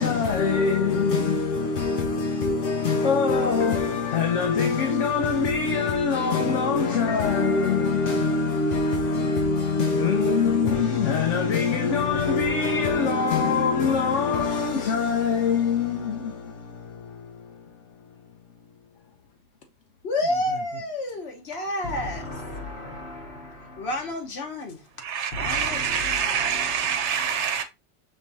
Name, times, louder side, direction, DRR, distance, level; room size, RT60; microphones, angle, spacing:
voice 1, 0.0-18.1, left 5 dB, 85° left, 1.1 m, -24 dB
voice 2, 20.0-24.9 25.3-27.2, left 1 dB, 65° left, 1.1 m, -31 dB
voice 3, 25.0-27.6, right 7 dB, 75° right, 1.0 m, -26 dB
5.4 x 3.2 x 2.6 m
omnidirectional pair, 1.2 m